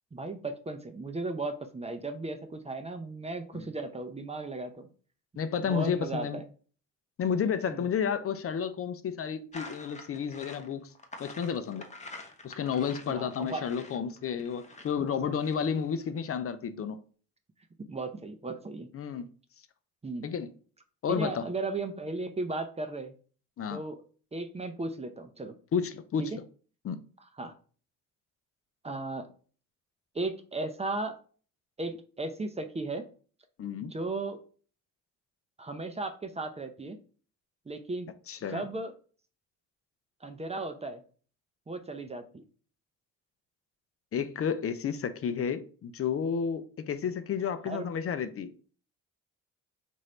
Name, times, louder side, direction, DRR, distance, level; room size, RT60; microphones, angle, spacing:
voice 1, 0.1-4.9 5.6-6.4 7.7-7.9 13.1-13.6 17.9-18.9 20.0-20.3 21.1-23.1 23.7-24.0 24.3-25.5 26.2-26.4 27.4-27.5 28.8-29.3 30.1-31.2 31.8-33.0 33.9-34.4 35.6-37.0 37.7-38.1 38.5-38.9 40.2-41.0 41.7-42.4 47.7-47.9, right 2 dB, 20° right, 0.6 m, -35 dB
voice 2, 5.4-6.4 7.2-10.9 11.2-11.8 12.4-17.0 18.9-19.3 20.2-20.5 21.0-21.5 23.6-23.8 25.7-26.3 26.8-27.0 33.6-33.9 38.3-38.6 44.1-48.5, left 7 dB, 45° left, 0.5 m, -31 dB
sound 1, 9.5-16.2, left 2 dB, 20° left, 0.8 m, -47 dB
3.1 x 2.7 x 4.3 m
cardioid pair, 75°, 31 cm